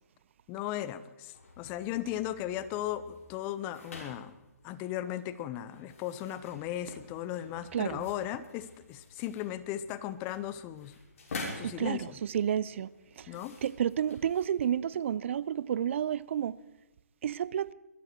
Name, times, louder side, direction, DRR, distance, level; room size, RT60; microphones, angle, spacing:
voice 1, 0.5-4.3 4.6-10.9 11.5-12.1 13.3-13.6, left 12 dB, 25° left, 0.7 m, -36 dB
sound 1, 1.3-14.7, left 2 dB, 60° left, 5.9 m, -48 dB
voice 2, 7.7-8.1 11.6-12.9 13.2-13.3 13.6-16.6 17.2-17.7, right 9 dB, 50° right, 0.5 m, -30 dB
22.0 x 12.5 x 4.5 m
hypercardioid pair, 145°, 9 cm